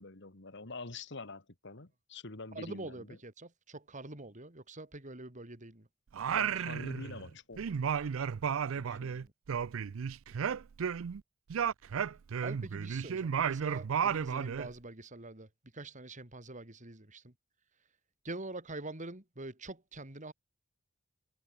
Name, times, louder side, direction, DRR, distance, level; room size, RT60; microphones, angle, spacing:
voice 1, 0.0-3.1 6.3-8.0 8.8-9.1, left 3 dB, 60° left, 2.2 m, -46 dB
voice 2, 2.5-5.9 8.8-9.3 12.4-17.3 18.2-20.3, right 2 dB, 40° right, 3.3 m, -45 dB
Singing, 6.1-7.3 7.6-11.2 11.5-14.7, right 7 dB, 90° right, 0.4 m, -33 dB
head